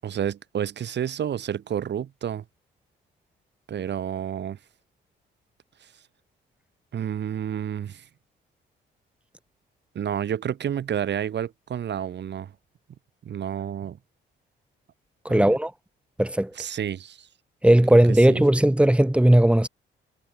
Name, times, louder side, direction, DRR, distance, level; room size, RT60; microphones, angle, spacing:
voice 1, 0.0-2.4 3.7-4.6 6.9-8.0 9.9-12.5 13.2-14.0 15.3-15.5 16.6-17.3 18.3-18.4, right 9 dB, 60° right, 5.9 m, -30 dB
voice 2, 15.2-15.7 16.2-16.5 17.6-19.7, right 1 dB, 5° right, 4.8 m, -17 dB
cardioid pair, 90°, 20 cm